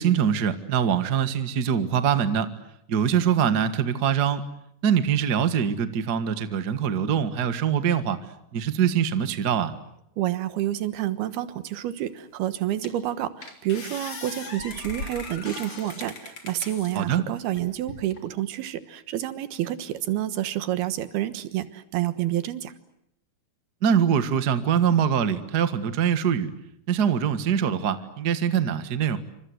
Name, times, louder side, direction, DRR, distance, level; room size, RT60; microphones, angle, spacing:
voice 1, 0.0-2.5 2.9-4.4 4.8-8.2 8.5-9.7 16.9-17.2 23.8-26.5 26.9-29.2, right 8 dB, 50° right, 11 dB, 1.2 m, -23 dB
voice 2, 10.2-22.7, right 13 dB, 80° right, 12 dB, 3.3 m, -29 dB
sound 1, 12.2-12.3 12.8-13.1 13.4-17.0 17.5-18.2, left 3 dB, 35° left, 4.0 m, -39 dB
28.5 x 26.0 x 7.9 m, 0.76 s
omnidirectional pair, 4.4 m